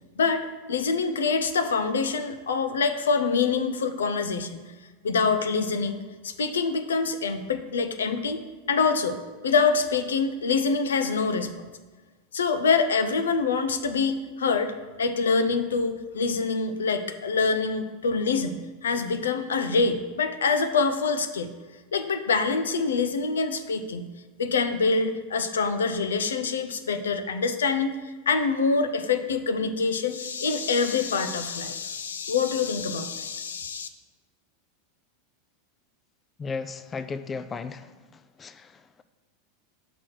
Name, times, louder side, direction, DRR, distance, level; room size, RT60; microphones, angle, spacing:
voice 1, 0.2-4.6 5.0-11.6 12.3-14.7 15.0-21.5 21.9-24.1 24.4-28.0 28.3-33.9, left 4 dB, 80° left, 9 dB, 0.6 m, -25 dB
voice 2, 36.4-37.9 38.4-38.7, left 4 dB, 25° left, 12 dB, 0.4 m, -34 dB
6.0 x 4.8 x 6.1 m, 1.3 s
hypercardioid pair, 90°, 0 cm